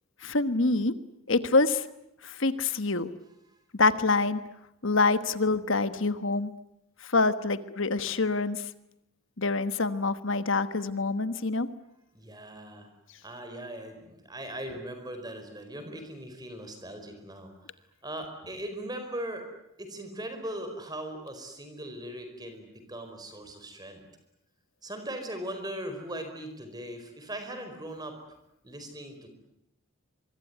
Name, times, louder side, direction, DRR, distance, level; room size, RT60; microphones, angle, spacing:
voice 1, 0.2-0.9 1.3-1.9 2.2-3.1 3.7-4.4 4.8-6.5 7.0-8.7 9.4-11.7, left 3 dB, 60° left, 12 dB, 1.4 m, -26 dB
voice 2, 12.1-12.9 13.2-17.5 18.0-19.4 19.8-24.0 24.8-28.2 28.6-29.3, right 1 dB, 20° right, 6 dB, 4.7 m, -39 dB
25.0 x 23.5 x 9.5 m, 0.85 s
head